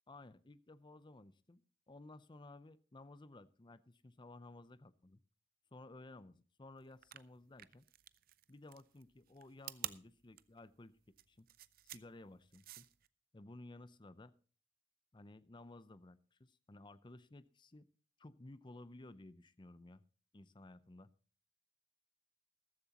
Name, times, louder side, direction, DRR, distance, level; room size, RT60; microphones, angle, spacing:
voice 1, 0.1-5.2 5.7-7.8 8.5-11.0 11.3-11.5 11.8-12.8 13.3-14.3 15.1-17.9 18.2-20.0 20.3-21.1, left 2 dB, 25° left, 15 dB, 0.6 m, -56 dB
sound 1, 6.9-13.1, right 13 dB, 50° right, 0.5 m, -50 dB
14.0 x 14.0 x 2.9 m, 0.39 s
head